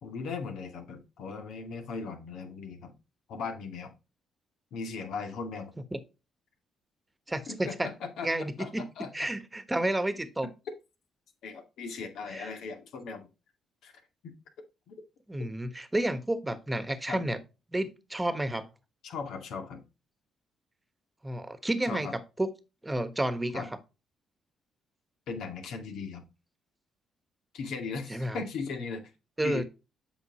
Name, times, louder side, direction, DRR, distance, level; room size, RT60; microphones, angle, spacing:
voice 1, 0.0-2.9 3.3-3.9 4.7-5.7 7.5-9.3 11.4-13.3 13.8-13.9 14.2-14.3 14.9-15.0 17.1-17.2 19.0-19.8 21.9-22.1 23.5-23.7 25.3-26.2 27.5-29.0 29.4-29.6, left 5 dB, 75° left, 2.1 m, -38 dB
voice 2, 7.3-7.9 8.2-8.9 9.1-10.5 12.3-12.5 15.3-17.4 17.7-18.7 21.2-22.1 22.4-22.5 22.8-23.6 28.1-28.4 29.4-29.6, right 1 dB, 15° right, 1.3 m, -31 dB
8.1 x 5.9 x 3.0 m
cardioid pair, 90°, 0 cm